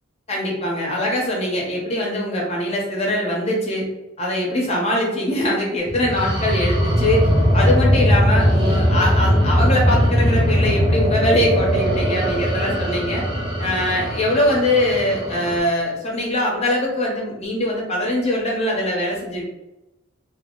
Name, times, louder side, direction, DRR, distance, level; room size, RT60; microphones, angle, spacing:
voice 1, 0.3-3.8 4.2-13.2 13.6-19.4, left 1 dB, 35° left, -2 dB, 0.9 m, -22 dB
sound 1, 5.9-15.6, equal, 25° right, 0.7 m, -19 dB
2.8 x 2.1 x 3.7 m, 0.97 s
head